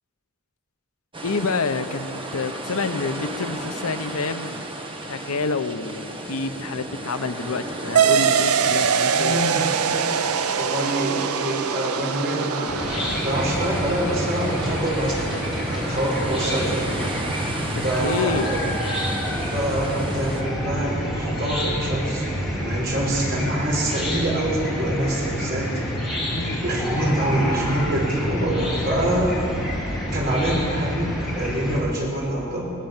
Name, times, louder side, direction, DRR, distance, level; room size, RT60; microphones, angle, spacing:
sound 1, 1.1-20.4, right 1 dB, 25° right, 1.5 m, -34 dB
voice 1, 1.2-4.7 5.1-9.4 18.0-18.5 26.3-26.6, left 4 dB, 80° left, 10 dB, 0.9 m, -28 dB
sound 2, 8.0-17.0, right 7 dB, 85° right, 0.7 m, -24 dB
voice 2, 9.1-9.7 10.5-16.9 17.8-18.7 19.3-25.7 26.6-29.4 30.1-32.7, right 1 dB, 45° right, -3 dB, 6.0 m, -26 dB
Chicken rooster / Cricket, 12.7-31.8, equal, ahead, 4.9 m, -28 dB
21.0 x 18.0 x 7.3 m, 2.8 s
head